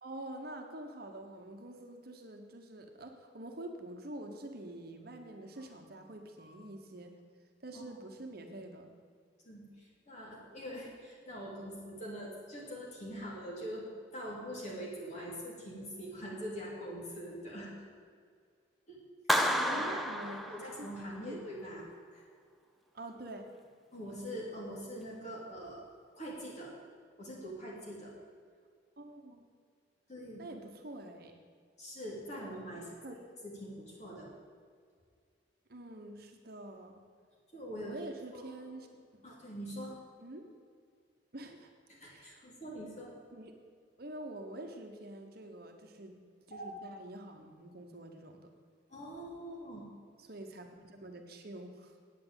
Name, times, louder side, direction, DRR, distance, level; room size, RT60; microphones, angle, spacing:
voice 1, 0.0-7.1 7.6-8.9 19.6-20.9 21.2-21.4 22.9-23.5 29.0-29.4 30.4-31.3 32.8-33.2 35.7-36.9 37.8-38.9 39.1-39.2 40.2-40.5 41.3-41.7 42.0-42.5 43.3-43.6 44.0-46.1 46.5-48.5 50.2-52.0, right 1 dB, 50° right, 4 dB, 1.1 m, -46 dB
voice 2, 9.4-13.8 14.1-17.7 18.9-19.0 19.4-21.8 22.1-22.2 23.9-25.8 26.2-26.7 27.2-28.1 30.1-30.5 31.8-33.0 33.4-34.3 37.5-37.9 38.3-38.5 39.2-40.0 41.9-43.1 46.5-46.7 48.9-49.9, equal, 35° left, -4 dB, 3.2 m, -43 dB
Clapping, 19.3-21.2, equal, ahead, 0.6 m, -31 dB
8.6 x 8.6 x 9.0 m, 2.1 s
head